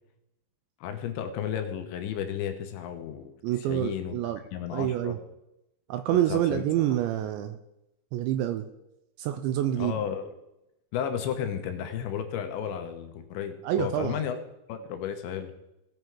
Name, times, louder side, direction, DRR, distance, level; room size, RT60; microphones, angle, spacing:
voice 1, 0.8-3.3 3.6-4.2 4.5-5.2 6.1-6.6 9.8-10.3 10.9-14.4 14.7-15.5, left 8 dB, 75° left, 7 dB, 3.0 m, -33 dB
voice 2, 3.4-4.4 4.7-5.2 5.9-7.6 8.1-8.6 9.2-10.0 13.6-14.2, right 12 dB, 85° right, 9 dB, 2.7 m, -27 dB
17.5 x 7.4 x 4.7 m, 0.88 s
omnidirectional pair, 5.7 m